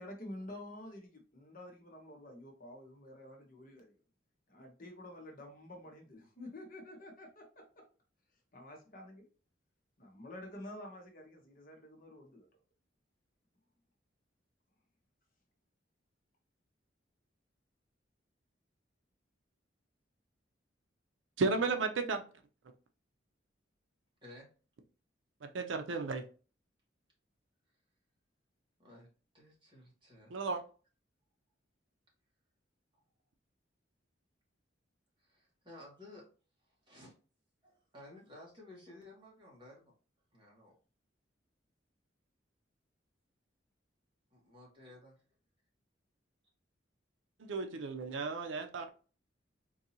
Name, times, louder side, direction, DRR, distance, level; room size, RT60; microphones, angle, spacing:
voice 1, 0.0-3.9 4.5-7.8 8.5-9.3 10.0-12.5, left 1 dB, 45° left, 1.0 m, -49 dB
voice 2, 21.4-22.2 25.4-26.2 30.3-30.6 47.4-48.9, right 4 dB, 80° right, 0.5 m, -34 dB
voice 3, 29.3-30.3 35.2-36.2 36.7-37.1 37.6-39.9 40.3-40.7 44.3-45.2, left 1 dB, 25° right, 1.5 m, -55 dB
3.9 x 2.6 x 2.8 m
head